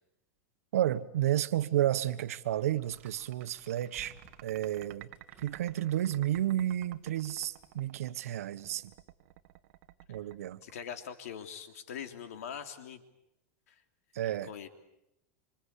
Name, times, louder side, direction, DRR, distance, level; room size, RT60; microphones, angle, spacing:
voice 1, 0.7-4.1 4.4-5.1 5.4-8.9 10.1-10.6 14.1-14.5, right 12 dB, 90° right, 12 dB, 1.4 m, -31 dB
sound 1, 2.8-8.0, right 5 dB, 20° right, 7.7 m, -61 dB
sound 2, 2.8-11.4, right 17 dB, 60° right, 1.5 m, -53 dB
voice 2, 10.6-13.0 13.7-13.8 14.2-14.7, left 8 dB, 90° left, 7 dB, 3.3 m, -43 dB
27.0 x 26.5 x 8.4 m, 0.85 s
supercardioid pair, 150°, 8 cm